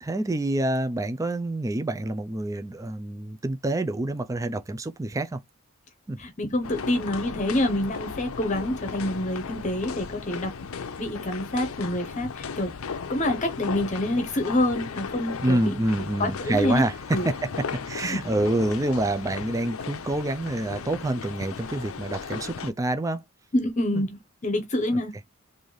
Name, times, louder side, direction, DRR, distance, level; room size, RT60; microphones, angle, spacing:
voice 1, 0.0-5.4 6.1-6.2 15.4-16.9 17.3-17.4 17.9-23.2 23.9-24.0 24.9-25.0, right 1 dB, 15° right, 0.4 m, -27 dB
voice 2, 6.2-10.7 11.0-12.7 13.1-15.8 16.2-16.8 17.1-17.3 18.0-18.2 23.5-25.3, left 1 dB, 35° left, 0.8 m, -27 dB
sound 1, 6.6-22.7, left 5 dB, 90° left, 0.6 m, -36 dB
3.9 x 2.6 x 3.1 m
head